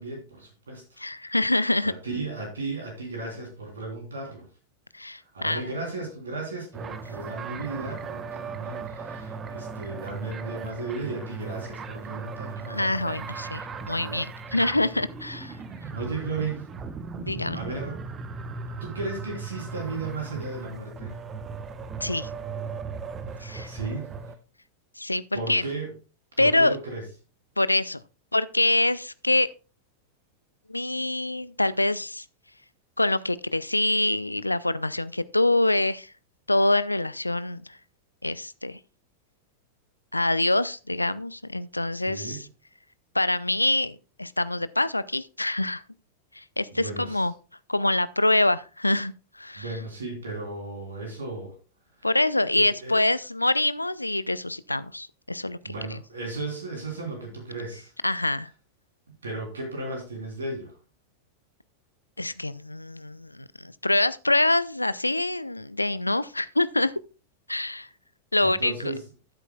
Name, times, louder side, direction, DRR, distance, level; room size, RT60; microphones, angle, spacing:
voice 1, 0.0-1.4 1.8-4.5 5.3-12.7 15.9-16.6 17.5-18.0 18.8-21.2 23.3-24.1 25.3-25.9 26.4-27.0 42.0-42.4 46.7-47.3 49.5-51.5 52.0-52.1 52.5-53.0 55.6-57.9 59.2-60.7 68.4-69.0, right 3 dB, 70° right, 3.3 m, -35 dB
voice 2, 1.0-1.9 4.9-5.6 12.7-15.6 17.2-17.6 22.0-22.3 23.4-23.7 25.0-25.6 26.4-26.8 27.6-28.0 28.3-29.5 30.7-32.2 33.0-36.1 36.5-37.8 38.2-38.8 40.1-42.4 43.1-45.8 46.4-47.3 47.7-49.1 49.4-49.6 52.0-56.0 58.0-58.5 62.2-66.9 67.5-67.9 68.3-68.7, left 2 dB, 85° left, 0.4 m, -25 dB
sound 1, 6.7-24.3, right 4 dB, 25° right, 0.9 m, -37 dB
14.0 x 8.2 x 2.3 m
figure-of-eight pair, 90°, 0 cm